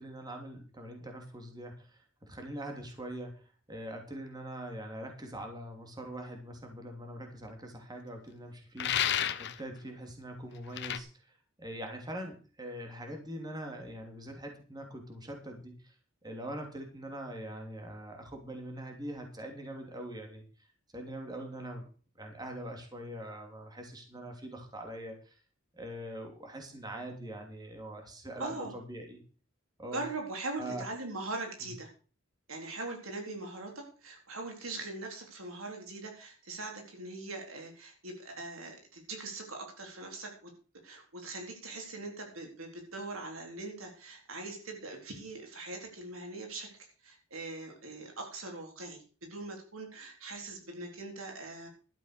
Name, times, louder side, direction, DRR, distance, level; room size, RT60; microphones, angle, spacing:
voice 1, 0.0-3.4 3.7-9.1 9.4-11.1 11.6-15.9 16.2-20.4 20.9-21.8 22.2-25.3 25.7-29.2 29.8-30.0 30.6-30.9 31.6-31.7, right 1 dB, 20° right, 3 dB, 2.8 m, -43 dB
sound 1, 8.8-9.6 10.7-11.0, left 10 dB, 55° left, 0.9 m, -30 dB
voice 2, 28.4-28.7 29.9-31.9 32.5-40.5 40.8-46.7 47.0-51.7, right 2 dB, 85° right, 2 dB, 4.1 m, -41 dB
12.5 x 7.5 x 6.7 m, 0.39 s
head